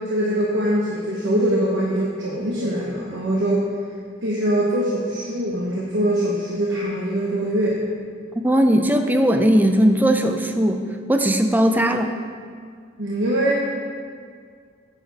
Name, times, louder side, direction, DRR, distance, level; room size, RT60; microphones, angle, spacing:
voice 1, 0.1-3.7 4.2-7.8 13.0-13.8, right 1 dB, 90° right, -4 dB, 1.0 m, -22 dB
voice 2, 8.4-12.1, equal, 10° right, 6 dB, 0.4 m, -18 dB
9.1 x 6.8 x 4.1 m, 2.1 s
head